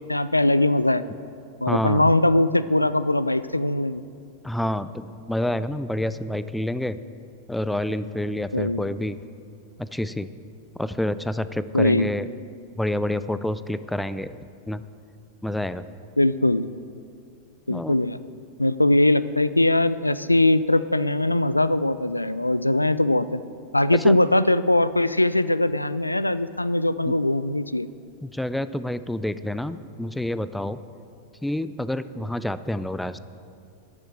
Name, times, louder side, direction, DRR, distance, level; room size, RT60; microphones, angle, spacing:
voice 1, 0.1-1.0 1.6-4.0 8.5-8.8 11.7-12.1 16.2-16.7 17.7-18.2 18.6-23.4 23.7-27.9, left 1 dB, 85° left, 15 dB, 0.3 m, -21 dB
voice 2, 1.7-2.1 4.4-7.0 7.5-9.2 9.8-10.3 10.7-12.3 12.8-14.4 14.7-14.8 15.4-15.9 17.7-18.0 23.9-24.2 27.1-27.2 28.2-30.8 31.4-33.2, left 1 dB, 5° left, 14 dB, 0.4 m, -28 dB
12.0 x 7.1 x 7.6 m, 2.4 s
figure-of-eight pair, 90°, 0 cm